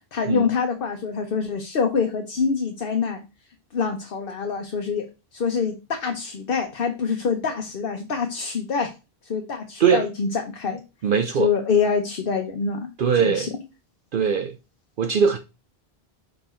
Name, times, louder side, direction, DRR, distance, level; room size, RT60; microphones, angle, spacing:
voice 1, 0.1-3.2 3.7-5.0 5.3-8.9 9.2-10.8 11.4-12.8 13.2-13.6, left 5 dB, 60° left, 1.1 m, -25 dB
voice 2, 11.0-11.5 13.0-13.5 14.1-14.6 15.0-15.4, right 6 dB, 60° right, 0.8 m, -20 dB
5.4 x 4.6 x 4.3 m
omnidirectional pair, 1.0 m